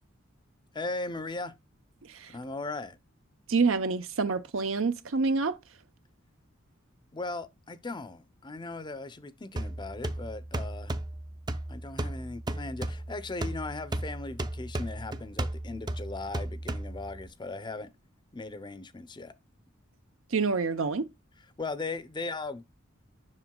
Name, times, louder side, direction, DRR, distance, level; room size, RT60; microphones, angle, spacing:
voice 1, 0.7-1.5 2.3-3.0 7.1-10.9 11.7-17.9 18.3-19.3 21.6-22.6, left 3 dB, 20° left, 0.6 m, -38 dB
voice 2, 3.5-5.6 20.3-21.1, right 4 dB, 75° right, 0.7 m, -27 dB
sound 1, 9.6-17.3, right 1 dB, 20° right, 0.5 m, -35 dB
7.5 x 6.1 x 2.2 m
head